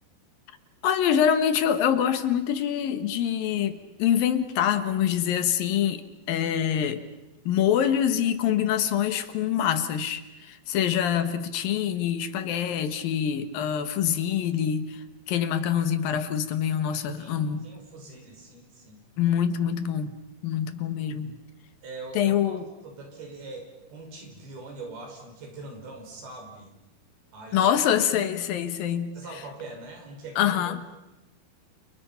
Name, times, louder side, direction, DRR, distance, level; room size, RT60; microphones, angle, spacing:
voice 1, 0.8-6.0 6.3-7.0 7.5-15.0 15.3-17.6 19.2-20.1 20.4-21.3 22.1-22.6 27.5-29.1 30.4-30.8, left 9 dB, 70° left, 10 dB, 3.0 m, -25 dB
voice 2, 17.2-19.0 21.8-26.7 27.3-27.7 29.1-30.7, right 3 dB, 90° right, 2 dB, 7.4 m, -42 dB
29.5 x 29.0 x 5.8 m, 1.0 s
omnidirectional pair, 4.3 m